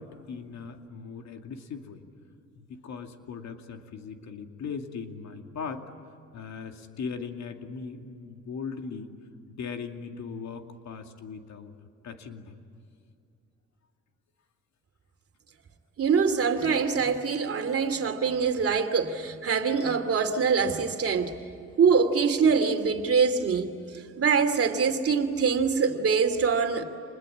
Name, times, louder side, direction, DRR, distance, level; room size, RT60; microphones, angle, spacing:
voice 1, 0.0-2.0 2.6-5.9 6.3-9.1 9.5-11.7 12.0-12.6, left 5 dB, 65° left, 2.5 m, -39 dB
voice 2, 16.0-21.3 21.8-26.8, right 5 dB, 50° right, 2.7 m, -24 dB
27.5 x 21.0 x 9.9 m
cardioid pair, 90°, 30 cm